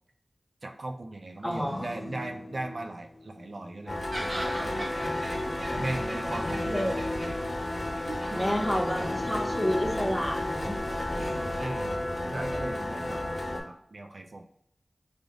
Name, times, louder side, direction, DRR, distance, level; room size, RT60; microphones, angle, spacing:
voice 1, 0.6-4.9 5.7-6.9 8.0-8.6 11.2-11.9 12.2-14.4, right 2 dB, 75° right, 4 dB, 0.4 m, -38 dB
sound 1, 1.3-4.2 5.0-11.9 12.3-12.6, left 1 dB, 45° left, 0.6 m, -41 dB
voice 2, 1.4-1.9 6.7-7.2 8.3-10.8 11.1-11.5, equal, 5° left, 1 dB, 0.7 m, -30 dB
sound 2, 3.9-13.6, left 1 dB, 65° left, 1.1 m, -32 dB
sound 3, 4.1-11.6, equal, 40° right, 1.2 m, -41 dB
3.4 x 2.6 x 3.6 m, 0.69 s
wide cardioid pair, 70°, 0 cm